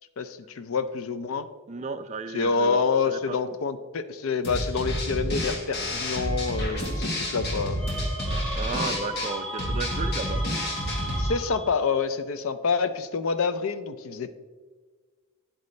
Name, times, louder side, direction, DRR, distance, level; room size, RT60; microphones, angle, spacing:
voice 1, 0.2-1.5 2.3-7.8 11.2-14.4, left 5 dB, 80° left, 11 dB, 0.5 m, -27 dB
voice 2, 1.7-2.8 3.1-3.6 8.5-10.4, right 4 dB, 35° right, 8 dB, 0.4 m, -34 dB
sound 1, 4.4-11.3, equal, 50° left, 1.5 m, -29 dB
Wind instrument woodwind instrument, 6.0-11.3, right 1 dB, 25° left, 2.6 m, -46 dB
sound 2, 7.8-12.0, right 1 dB, ahead, 1.4 m, -36 dB
9.5 x 8.1 x 3.2 m, 1.5 s
head